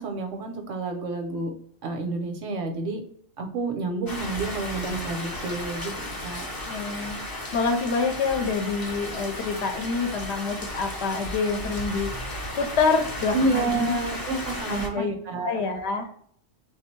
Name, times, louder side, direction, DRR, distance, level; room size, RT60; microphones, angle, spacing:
voice 1, 0.0-1.5 1.8-3.1 3.4-5.9 6.2-6.5 13.3-15.6, right 3 dB, 90° right, 4 dB, 1.1 m, -29 dB
sound 1, 4.1-14.9, left 1 dB, 25° left, 0.5 m, -34 dB
voice 2, 6.6-13.9 14.7-15.2 15.4-16.1, left 4 dB, 70° left, 6 dB, 0.8 m, -27 dB
3.5 x 2.6 x 4.3 m, 0.63 s
omnidirectional pair, 1.2 m